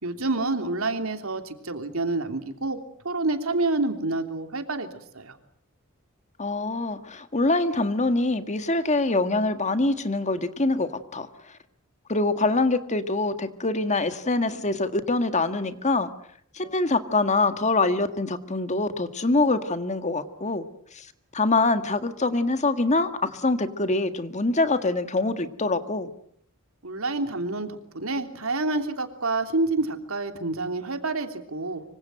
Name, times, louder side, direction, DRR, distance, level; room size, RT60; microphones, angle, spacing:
voice 1, 0.0-2.8 3.0-4.9 5.1-5.4 26.8-31.8, right 2 dB, 75° right, 7 dB, 3.1 m, -28 dB
voice 2, 6.4-11.3 12.1-16.1 16.6-20.6 21.0-21.1 21.3-26.1, left 2 dB, 35° left, 10 dB, 1.7 m, -24 dB
25.5 x 25.0 x 7.7 m, 0.65 s
head